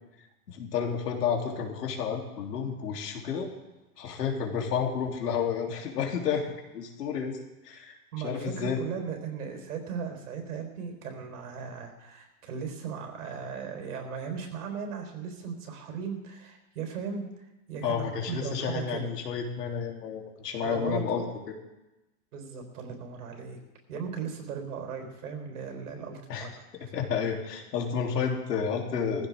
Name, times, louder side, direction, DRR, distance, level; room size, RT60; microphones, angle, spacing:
voice 1, 0.5-3.5 4.0-6.5 6.7-7.4 7.6-8.0 8.2-8.8 17.8-21.2 26.3-26.5 26.7-29.3, left 7 dB, 85° left, 0 dB, 3.3 m, -31 dB
voice 2, 8.1-19.1 20.6-21.2 22.3-23.6 23.9-26.5 26.8-26.9, right 6 dB, 70° right, 3 dB, 4.3 m, -37 dB
19.0 x 15.0 x 3.6 m, 1.0 s
supercardioid pair, 160°, 47 cm